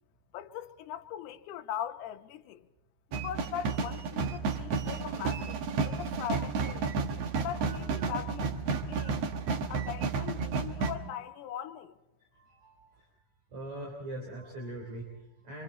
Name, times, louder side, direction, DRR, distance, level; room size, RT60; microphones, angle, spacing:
voice 1, 0.3-2.7 3.1-6.9 7.4-8.5 8.9-9.3 9.7-12.0, left 10 dB, 85° left, 2.9 m, -40 dB
sound 1, 3.1-11.0, right 5 dB, 75° right, 1.4 m, -32 dB
voice 2, 12.3-13.1 13.5-15.6, right 1 dB, 45° right, 4.4 m, -42 dB
26.0 x 25.5 x 4.3 m
omnidirectional pair, 4.5 m